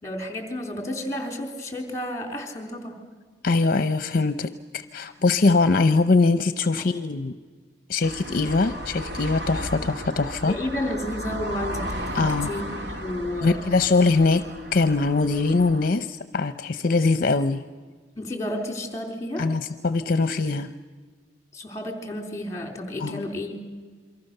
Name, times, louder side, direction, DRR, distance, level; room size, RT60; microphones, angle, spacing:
voice 1, 0.0-3.0 10.5-13.6 18.2-19.5 21.5-23.5, left 1 dB, 15° left, 4 dB, 3.7 m, -31 dB
voice 2, 3.4-7.4 7.9-10.6 12.1-12.5 13.4-14.5 14.7-17.6 19.4-20.7 23.0-23.3, left 3 dB, 50° left, 10 dB, 0.7 m, -22 dB
sound 1, 8.0-15.9, equal, 65° right, 2.5 m, -34 dB
28.0 x 24.0 x 6.8 m, 1.5 s
head